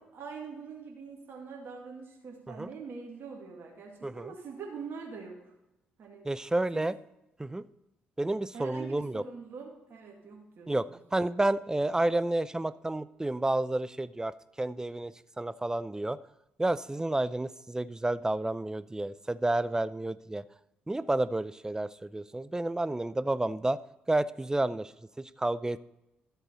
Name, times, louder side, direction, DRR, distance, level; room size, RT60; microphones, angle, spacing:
voice 1, 0.0-5.5 6.0-6.3 6.7-6.8 8.5-11.0, right 5 dB, 55° right, 0 dB, 2.3 m, -44 dB
voice 2, 6.2-6.9 7.4-7.7 8.2-9.2 10.7-16.2 16.6-20.4 20.9-23.8 24.1-25.8, right 2 dB, 15° right, 16 dB, 0.5 m, -30 dB
13.0 x 7.9 x 4.1 m, 0.92 s
hypercardioid pair, 45°, 5 cm